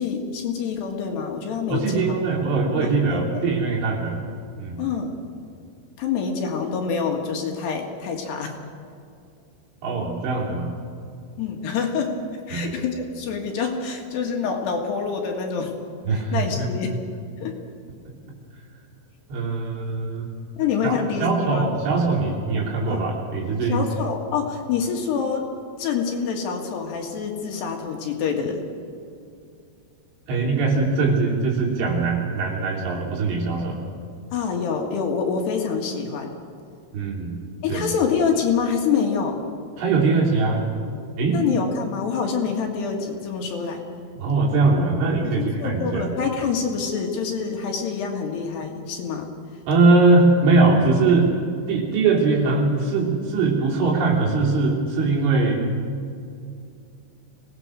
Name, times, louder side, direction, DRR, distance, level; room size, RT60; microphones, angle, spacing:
voice 1, 0.0-2.4 2.8-3.4 4.8-5.1 6.0-8.6 11.4-12.2 12.5-15.7 16.1-17.0 17.4-17.6 20.6-21.7 22.9-23.0 23.7-25.5 25.8-28.7 34.3-36.3 37.6-39.4 41.3-43.8 45.3-49.3, left 6 dB, 65° left, 2 dB, 3.7 m, -26 dB
voice 2, 1.7-4.2 4.6-4.8 9.8-10.7 12.5-12.7 16.1-16.7 19.3-20.3 20.8-23.8 30.3-33.8 36.9-37.4 37.7-37.9 39.8-40.6 41.2-41.4 44.2-46.1 49.7-51.3 51.7-55.6, right 3 dB, 75° right, -2 dB, 5.8 m, -21 dB
25.0 x 18.5 x 6.3 m, 2.4 s
omnidirectional pair, 5.6 m